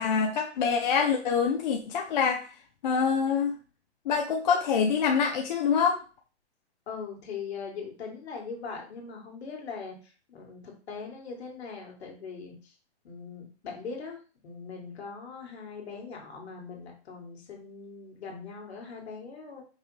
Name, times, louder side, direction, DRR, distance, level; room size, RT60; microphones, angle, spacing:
voice 1, 0.0-2.4 2.8-3.5 4.1-6.0, left 6 dB, 40° left, 2 dB, 0.5 m, -25 dB
voice 2, 6.9-12.7 13.0-14.2 14.4-19.6, left 5 dB, 65° left, 0 dB, 1.9 m, -41 dB
5.4 x 2.5 x 3.2 m, 0.36 s
hypercardioid pair, 150°, 35 cm